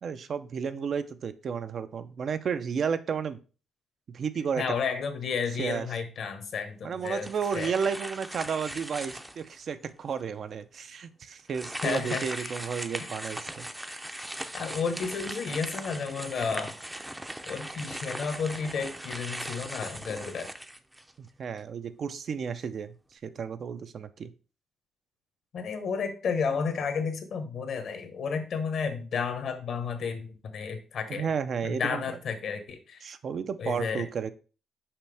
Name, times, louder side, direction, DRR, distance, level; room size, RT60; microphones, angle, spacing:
voice 1, 0.0-3.4 4.1-4.6 5.6-5.9 6.8-13.7 21.2-22.9 23.2-24.3 31.1-32.2 33.0-34.3, right 6 dB, 55° right, 11 dB, 0.5 m, -32 dB
voice 2, 4.6-7.3 7.5-7.7 11.8-12.5 13.0-13.1 14.5-16.7 17.4-20.5 25.5-31.3 31.6-33.1 33.6-34.0, left 5 dB, 65° left, 8 dB, 1.2 m, -32 dB
sound 1, 7.0-9.6 10.1-10.2 11.5-21.3, right 1 dB, 10° right, 0.5 m, -39 dB
5.8 x 5.4 x 3.4 m, 0.36 s
cardioid pair, 105°, 0 cm